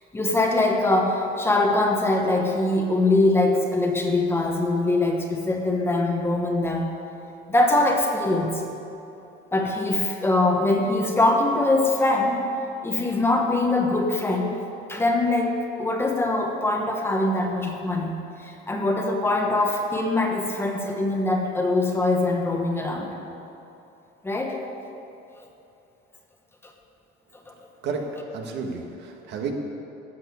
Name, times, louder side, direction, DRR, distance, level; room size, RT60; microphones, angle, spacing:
voice 1, 0.1-6.9 7.5-8.6 9.5-12.4 12.8-14.6 14.9-18.1 18.4-23.1 24.2-24.6 27.5-27.6, left 2 dB, 10° left, 1 dB, 1.2 m, -23 dB
voice 2, 28.3-29.5, right 5 dB, 65° right, 2 dB, 1.7 m, -31 dB
14.0 x 6.9 x 8.5 m, 2.8 s
cardioid pair, 145°, 20 cm